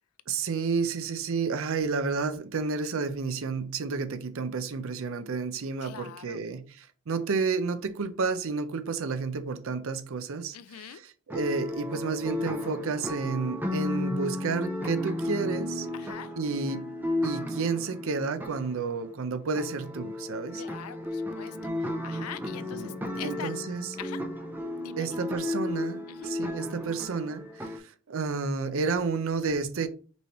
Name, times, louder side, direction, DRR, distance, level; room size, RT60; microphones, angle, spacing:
voice 1, 0.3-15.9 16.4-16.9 17.2-20.6 22.7-23.9 25.0-29.9, right 4 dB, 65° right, 0.5 m, -31 dB
voice 2, 5.8-6.4 10.5-11.0 15.9-16.3 20.5-23.5 24.0-24.2 24.8-25.2 26.1-26.3, left 10 dB, 75° left, 0.4 m, -43 dB
sound 1, 11.3-19.1 19.5-27.8, left 1 dB, 10° right, 0.5 m, -34 dB
5.3 x 3.1 x 3.0 m
head